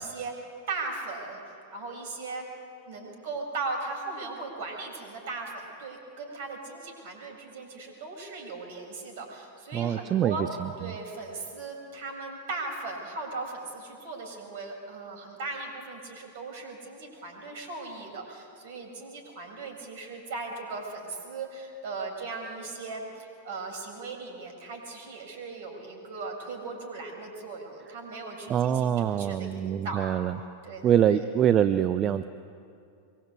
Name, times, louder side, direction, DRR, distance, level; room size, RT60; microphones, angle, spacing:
voice 1, 0.0-2.4 2.9-10.4 10.8-30.1 30.6-30.9, right 3 dB, 55° right, 2 dB, 6.8 m, -38 dB
voice 2, 9.7-10.9 28.5-30.4 30.8-32.2, right 9 dB, 30° right, 12 dB, 0.7 m, -25 dB
24.5 x 22.5 x 8.5 m, 2.5 s
figure-of-eight pair, 90°, 0 cm